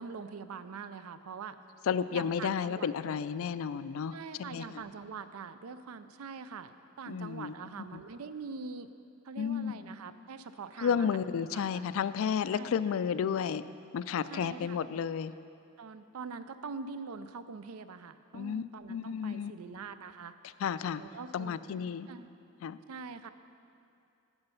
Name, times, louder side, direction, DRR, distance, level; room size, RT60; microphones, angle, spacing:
voice 1, 0.0-1.6 2.1-2.9 4.1-8.9 9.2-11.2 11.5-11.9 12.5-12.7 14.3-14.8 15.8-20.3 21.0-21.6 22.1-22.3 22.9-23.3, right 5 dB, 80° right, 12 dB, 0.5 m, -44 dB
voice 2, 1.9-4.8 7.1-8.0 9.4-9.9 10.8-13.6 13.9-15.3 18.3-19.8 20.6-21.0 21.3-22.1 22.6-22.8, left 7 dB, 65° left, 15 dB, 0.3 m, -32 dB
10.5 x 8.0 x 5.5 m, 2.5 s
head